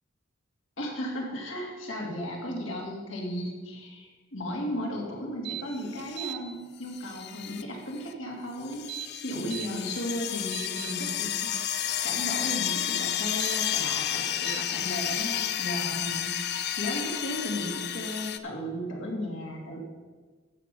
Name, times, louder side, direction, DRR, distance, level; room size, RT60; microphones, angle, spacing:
voice 1, 0.8-11.7 12.0-16.4 16.8-19.8, equal, 75° left, -1 dB, 2.7 m, -35 dB
sound 1, 5.4-5.6 6.0-6.4 8.7-9.7 10.2-10.9 13.3-13.6 14.4-14.6, right 17 dB, 60° right, 0.7 m, -38 dB
sound 2, 5.9-6.3 6.9-7.6 8.0-8.1 8.6-18.4, left 11 dB, 55° left, 0.5 m, -31 dB
14.0 x 6.0 x 5.6 m, 1.3 s
head